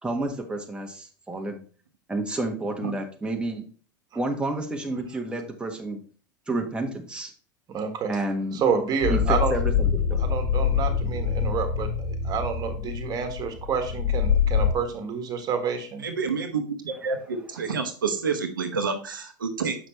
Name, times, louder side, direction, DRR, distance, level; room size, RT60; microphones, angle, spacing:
voice 1, 0.0-1.6 2.1-3.6 4.1-6.0 6.5-7.3 8.1-8.6 9.1-10.2, right 2 dB, 10° right, 2 dB, 1.4 m, -30 dB
voice 2, 7.7-8.1 8.5-9.5 10.2-16.1, right 6 dB, 40° right, 7 dB, 1.6 m, -28 dB
sound 1, 9.0-14.7, left 7 dB, 60° left, 1.1 m, -25 dB
voice 3, 16.0-19.8, right 5 dB, 90° right, 5 dB, 0.9 m, -28 dB
7.1 x 5.8 x 3.1 m, 0.41 s
hypercardioid pair, 85°, 11 cm